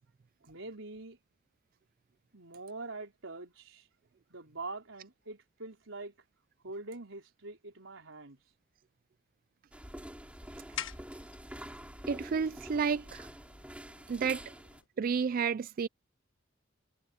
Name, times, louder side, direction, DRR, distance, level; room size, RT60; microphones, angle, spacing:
voice 1, 0.4-1.2 2.3-3.9 4.3-6.1 6.6-8.4, right 3 dB, 90° right, 4.2 m, -44 dB
sound 1, 9.7-14.8, equal, 5° right, 3.7 m, -47 dB
sound 2, 9.9-14.9, left 9 dB, 85° left, 1.3 m, -48 dB
voice 2, 12.1-13.3 14.1-14.4 15.0-15.9, right 6 dB, 45° right, 0.3 m, -31 dB
head